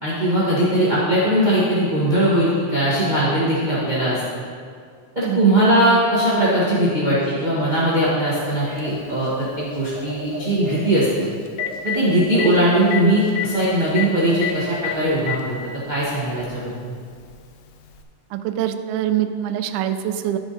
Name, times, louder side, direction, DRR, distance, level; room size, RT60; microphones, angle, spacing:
voice 1, 0.0-4.4 5.1-11.3 11.8-15.5 15.9-16.9, right 1 dB, 45° right, -9 dB, 0.5 m, -20 dB
sound 1, 7.1-14.9, right 2 dB, 5° right, 1.4 m, -37 dB
Telephone, 8.8-8.9 11.0-11.1 11.5-12.0 12.4-12.5 12.9-13.0 13.3-13.5 14.0-14.1 14.4-14.5 14.8-15.4 16.4-16.5 17.9-18.0, left 11 dB, 90° left, 2.4 m, -26 dB
voice 2, 18.3-20.4, right 11 dB, 85° right, 8 dB, 1.7 m, -24 dB
11.5 x 5.9 x 4.1 m, 2.1 s
omnidirectional pair, 3.9 m